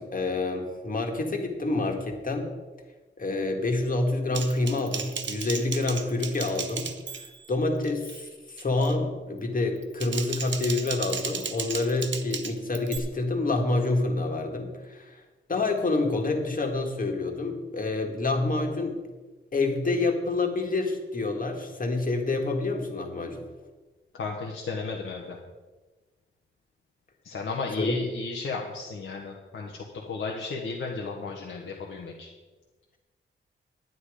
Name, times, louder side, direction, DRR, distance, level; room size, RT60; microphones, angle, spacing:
voice 1, 0.0-2.5 3.2-6.9 7.5-15.2 15.5-19.0 19.5-23.4 27.8-28.0, left 2 dB, 40° left, 3 dB, 1.9 m, -27 dB
Typing, 4.3-7.5 7.8-8.2 8.6-9.0 9.8-13.0, right 6 dB, 65° right, 1.0 m, -35 dB
voice 2, 24.1-25.4 27.2-32.3, left 4 dB, 75° left, -1 dB, 1.4 m, -34 dB
11.0 x 9.5 x 5.0 m, 1.3 s
wide cardioid pair, 110°, 21 cm